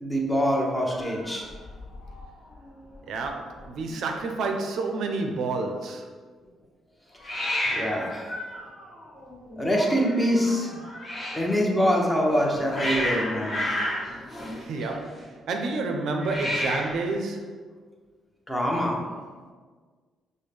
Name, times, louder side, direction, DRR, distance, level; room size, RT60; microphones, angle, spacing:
voice 1, 0.0-1.5 7.7-8.4 9.6-10.7 11.3-13.6 18.5-19.0, equal, 10° left, -2 dB, 0.8 m, -24 dB
Hiss, 0.9-2.3 2.5-3.0 3.2-3.3 3.5-4.2 7.2-11.5 12.3-15.2 16.1-17.1, left 1 dB, 30° left, 1.2 m, -32 dB
voice 2, 3.1-6.0 14.6-17.5, right 3 dB, 75° right, 3 dB, 0.5 m, -29 dB
5.3 x 2.1 x 3.3 m, 1.5 s
cardioid pair, 90°, 0 cm